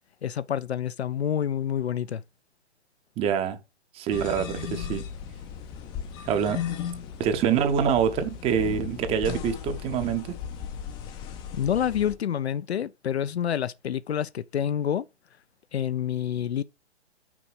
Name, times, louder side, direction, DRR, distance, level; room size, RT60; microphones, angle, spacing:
voice 1, 0.2-2.2 11.5-15.1 15.7-16.6, left 9 dB, 70° left, 0.6 m, -28 dB
voice 2, 3.2-3.6 3.9-5.0 6.3-6.6 7.2-10.4, right 8 dB, 15° right, 0.8 m, -25 dB
sound 1, 4.1-12.1, left 8 dB, 15° left, 0.5 m, -36 dB
6.0 x 4.8 x 6.0 m
figure-of-eight pair, 125°, 34 cm